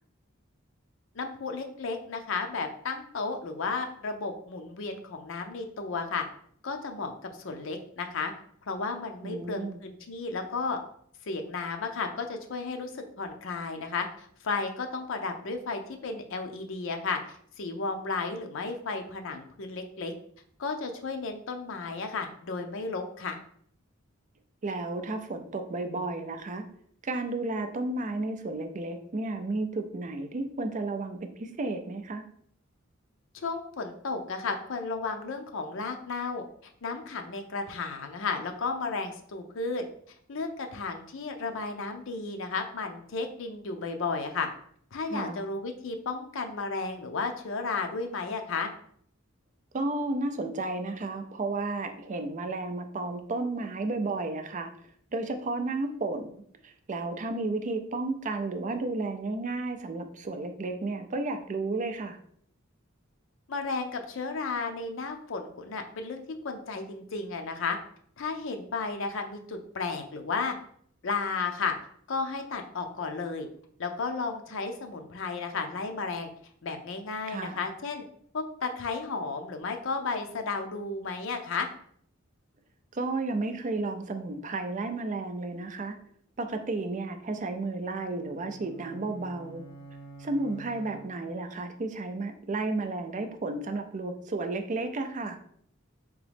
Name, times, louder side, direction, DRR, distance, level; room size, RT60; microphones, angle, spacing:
voice 1, 1.1-6.2 6.6-7.1 7.4-8.3 8.7-10.8 11.2-17.2 17.6-20.1 20.6-23.4 33.3-36.4 36.8-39.8 40.3-44.5 44.9-48.7 63.5-67.8 68.2-70.6 71.0-71.7 72.1-73.5 73.8-76.3 76.6-78.0 78.3-81.7, left 4 dB, 70° left, 5 dB, 0.6 m, -33 dB
voice 2, 9.2-9.8 24.6-26.6 27.0-32.2 45.1-45.4 49.7-54.7 55.1-56.3 56.6-62.2 77.3-77.6 82.9-86.0 86.4-89.6 90.2-95.4, right 2 dB, 40° right, 7 dB, 0.4 m, -32 dB
sound 1, 88.0-91.6, right 3 dB, 30° left, 1.2 m, -49 dB
3.7 x 3.0 x 3.4 m, 0.63 s
head